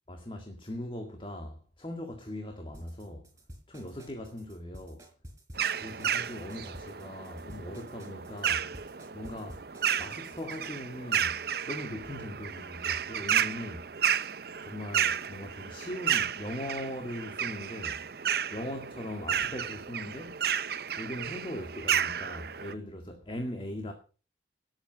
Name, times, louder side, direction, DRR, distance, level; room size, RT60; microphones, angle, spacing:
voice 1, 0.1-3.3 3.7-5.1 5.7-9.7 10.0-11.4 11.7-13.9 14.6-18.1 18.5-20.4 21.0-23.9, left 1 dB, 30° left, 2.0 m, -40 dB
sound 1, 2.7-10.7, equal, 15° right, 4.4 m, -50 dB
sound 2, 5.5-22.7, right 8 dB, 55° right, 0.6 m, -32 dB
19.0 x 8.1 x 6.2 m
head